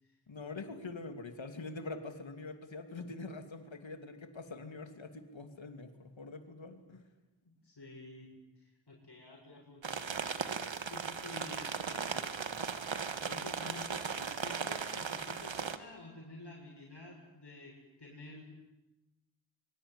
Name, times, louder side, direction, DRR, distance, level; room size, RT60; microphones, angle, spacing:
voice 1, 0.3-7.0, left 3 dB, 85° left, 7 dB, 2.9 m, -44 dB
voice 2, 7.4-8.3 8.6-10.3 10.9-18.4, left 2 dB, 60° left, -1 dB, 7.2 m, -51 dB
sound 1, 9.8-15.8, right 6 dB, 90° right, 1.6 m, -37 dB
25.0 x 24.0 x 9.9 m, 1.0 s
wide cardioid pair, 60°, 45 cm